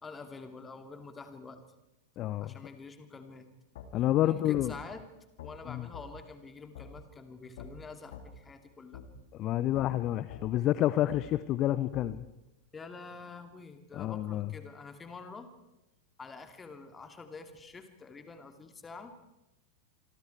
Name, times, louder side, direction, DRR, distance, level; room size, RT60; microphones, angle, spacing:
voice 1, 0.0-1.6 2.4-3.5 4.2-5.0 5.4-9.0 12.7-15.5 16.2-19.1, left 4 dB, 15° left, 8 dB, 2.8 m, -47 dB
voice 2, 2.2-2.6 3.9-4.7 5.7-5.9 9.3-12.2 13.9-14.5, left 13 dB, 35° left, 15 dB, 0.8 m, -29 dB
sound 1, 3.7-3.9 4.6-4.7 5.4-5.5 5.9-6.1 6.7-6.9 7.6-7.7 8.1-8.3 8.9-9.1 9.7-9.9 10.3-10.4 11.1-11.2 11.9-12.1, left 9 dB, 55° left, 2.9 m, -45 dB
27.0 x 24.5 x 4.7 m, 0.93 s
figure-of-eight pair, 90°, 0 cm